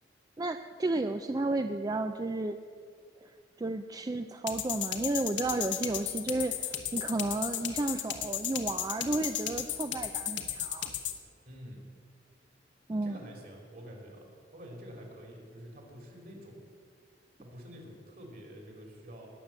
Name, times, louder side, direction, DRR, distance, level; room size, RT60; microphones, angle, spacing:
voice 1, 0.4-2.6 3.2-3.3 3.6-10.9 12.9-13.2, right 2 dB, 20° right, 8 dB, 0.4 m, -32 dB
sound 1, 4.5-11.2, left 11 dB, 85° left, 1.4 m, -34 dB
voice 2, 11.5-11.8 13.0-16.7 17.4-19.3, equal, 55° right, 0 dB, 3.7 m, -48 dB
20.0 x 8.2 x 7.4 m, 2.2 s
head